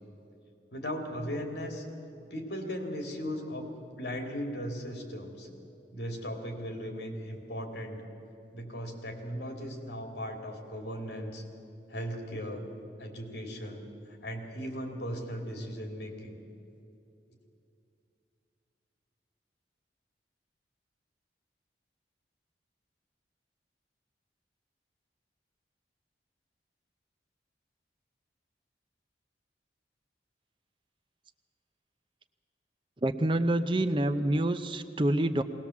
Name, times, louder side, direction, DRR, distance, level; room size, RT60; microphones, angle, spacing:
voice 1, 0.7-1.8 2.3-3.7 4.0-5.5 5.9-8.0 8.5-11.4 11.9-12.6 13.0-13.9 14.2-16.4, equal, 70° left, 3 dB, 2.9 m, -37 dB
voice 2, 33.0-35.4, right 1 dB, 30° right, 9 dB, 0.6 m, -27 dB
20.0 x 19.0 x 7.2 m, 2.7 s
head